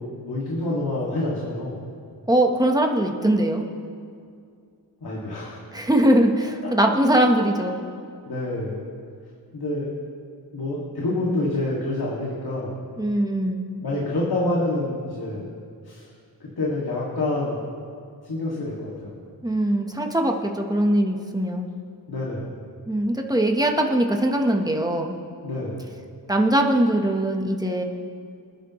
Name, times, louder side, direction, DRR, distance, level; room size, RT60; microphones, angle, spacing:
voice 1, 0.0-1.8 5.0-5.6 6.6-6.7 8.3-8.8 9.5-9.9 10.5-12.8 13.8-15.5 15.8-16.1 16.4-17.6 18.2-19.2 22.1-22.5 25.4-25.8, left 2 dB, 60° left, -5 dB, 2.4 m, -27 dB
voice 2, 2.3-3.7 5.7-7.8 13.0-13.6 19.4-21.7 22.9-25.2 26.3-27.8, right 1 dB, 10° right, 2 dB, 1.2 m, -21 dB
26.0 x 10.0 x 3.1 m, 2.3 s
wide cardioid pair, 130°, 42 cm